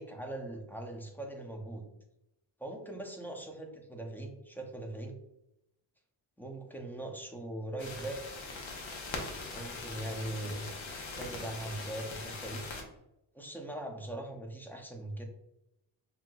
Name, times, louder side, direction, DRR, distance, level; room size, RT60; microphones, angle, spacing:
voice 1, 0.0-1.9 2.6-5.2 6.4-8.5 9.5-10.7 11.0-12.6 13.3-15.2, right 1 dB, 5° left, 2 dB, 0.5 m, -41 dB
sound 1, 7.8-12.8, left 3 dB, 75° left, 1.0 m, -41 dB
5.5 x 2.7 x 2.3 m, 0.86 s
wide cardioid pair, 130°, 47 cm